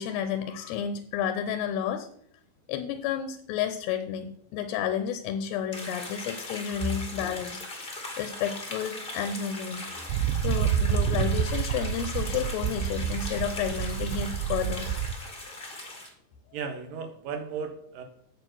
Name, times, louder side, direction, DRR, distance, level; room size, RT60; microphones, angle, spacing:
voice 1, 0.0-2.1 2.7-9.8 10.4-14.9, left 8 dB, 75° left, 9 dB, 2.7 m, -31 dB
sound 1, 5.7-16.1, left 2 dB, 35° left, 0.8 m, -39 dB
sound 2, 10.1-15.1, right 9 dB, 80° right, 2.6 m, -28 dB
voice 2, 16.5-18.0, right 3 dB, 65° right, 6 dB, 2.5 m, -34 dB
9.0 x 7.5 x 6.2 m, 0.65 s
omnidirectional pair, 5.1 m